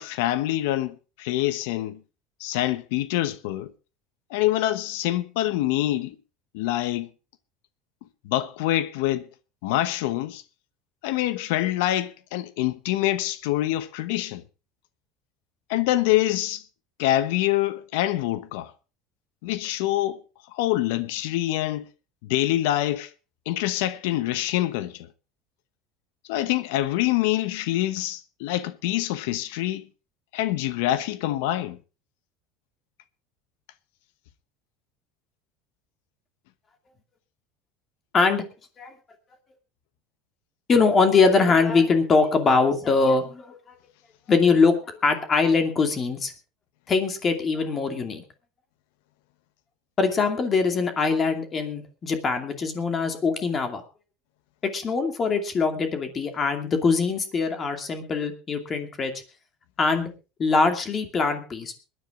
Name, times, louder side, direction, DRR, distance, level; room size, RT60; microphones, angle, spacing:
voice 1, 0.0-2.0 2.4-3.7 4.3-6.1 6.5-7.1 8.2-9.3 9.6-10.4 11.0-14.4 15.7-16.6 17.0-18.7 19.4-20.2 20.5-21.8 22.2-23.1 23.5-25.1 26.3-29.9 30.3-31.8, left 15 dB, 80° left, 1.0 m, -25 dB
voice 2, 38.1-38.4 38.8-38.9 40.7-43.8 44.3-44.8 45.0-46.3 46.9-48.2 50.0-53.8 54.7-59.1 59.8-60.1 60.4-61.7, left 4 dB, 30° left, 2.5 m, -22 dB
22.0 x 10.0 x 3.8 m
supercardioid pair, 130°, 0 cm